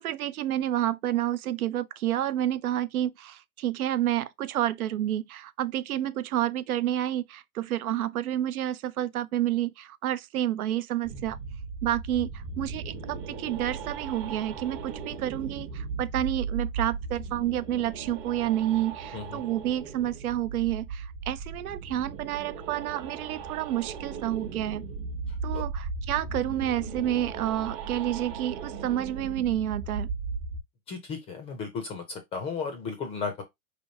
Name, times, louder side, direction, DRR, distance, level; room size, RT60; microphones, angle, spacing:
voice 1, 0.0-11.4 11.8-24.8 25.4-30.1, right 12 dB, 80° right, 0.6 m, -29 dB
sound 1, 11.0-30.6, right 5 dB, 35° right, 0.9 m, -37 dB
voice 2, 30.9-33.4, left 5 dB, 15° left, 0.5 m, -34 dB
4.7 x 3.3 x 2.7 m
hypercardioid pair, 140°, 43 cm